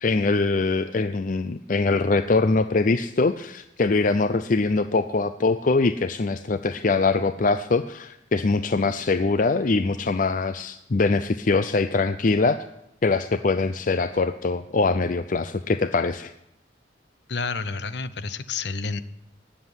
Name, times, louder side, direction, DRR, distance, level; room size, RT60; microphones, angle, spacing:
voice 1, 0.0-12.6 13.0-16.3, left 3 dB, 45° left, 11 dB, 0.5 m, -23 dB
voice 2, 17.3-19.0, left 4 dB, 60° left, 14 dB, 0.9 m, -30 dB
18.5 x 7.6 x 9.7 m, 0.85 s
head